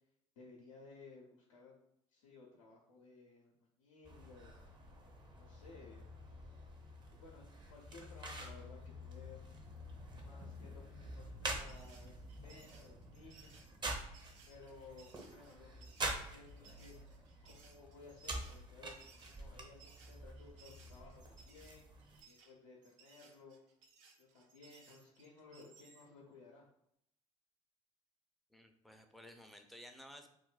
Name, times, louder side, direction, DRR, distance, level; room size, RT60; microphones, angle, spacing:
voice 1, 0.4-1.8 2.1-3.5 3.8-4.6 5.0-5.1 5.4-6.1 7.1-9.4 10.2-13.6 14.5-17.0 17.4-21.8 22.3-23.6 24.2-26.7, left 4 dB, 85° left, -2 dB, 0.6 m, -58 dB
sound 1, 4.0-22.2, right 1 dB, 30° right, 0.7 m, -47 dB
sound 2, 11.7-26.1, right 5 dB, 80° right, 0.6 m, -64 dB
voice 2, 28.5-30.3, equal, ahead, 5 dB, 0.5 m, -55 dB
2.5 x 2.1 x 3.9 m, 0.75 s
hypercardioid pair, 65°, 16 cm